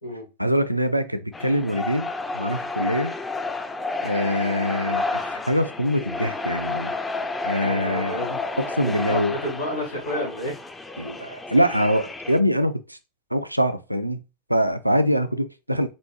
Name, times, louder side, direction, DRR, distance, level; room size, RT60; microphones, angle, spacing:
voice 1, 0.4-3.1 4.0-6.9 7.4-8.2 8.6-9.4 11.0-13.0 13.3-14.2 14.5-15.9, equal, 90° right, 0.3 m, -24 dB
sound 1, 1.3-12.4, left 3 dB, 10° left, 0.3 m, -31 dB
voice 2, 7.6-8.4 8.8-10.5, left 1 dB, 80° left, 2.0 m, -30 dB
4.1 x 2.6 x 3.0 m
figure-of-eight pair, 90°, 0 cm